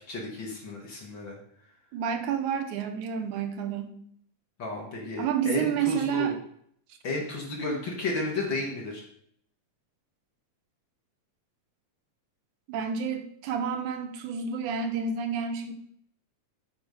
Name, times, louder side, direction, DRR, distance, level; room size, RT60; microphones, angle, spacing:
voice 1, 0.1-1.4 4.6-6.3 7.0-9.0, left 2 dB, 45° left, -1 dB, 1.8 m, -32 dB
voice 2, 1.9-3.9 5.2-6.4 12.7-15.7, right 7 dB, 90° right, 6 dB, 2.3 m, -29 dB
8.3 x 4.9 x 5.2 m, 0.65 s
omnidirectional pair, 3.5 m